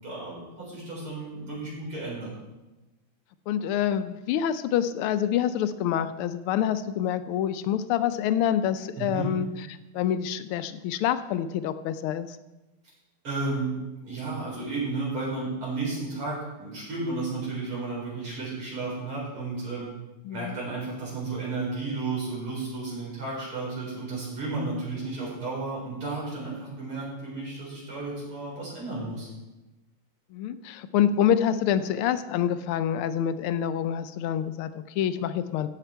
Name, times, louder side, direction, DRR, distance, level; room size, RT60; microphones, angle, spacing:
voice 1, 0.0-2.3 9.0-9.3 13.2-13.8 14.0-19.9 20.3-29.3, right 3 dB, 85° right, -6 dB, 5.4 m, -33 dB
voice 2, 3.5-9.5 9.9-12.3 20.3-20.6 30.3-35.7, left 9 dB, 85° left, 12 dB, 1.5 m, -26 dB
15.0 x 5.8 x 4.5 m, 1.0 s
omnidirectional pair, 2.3 m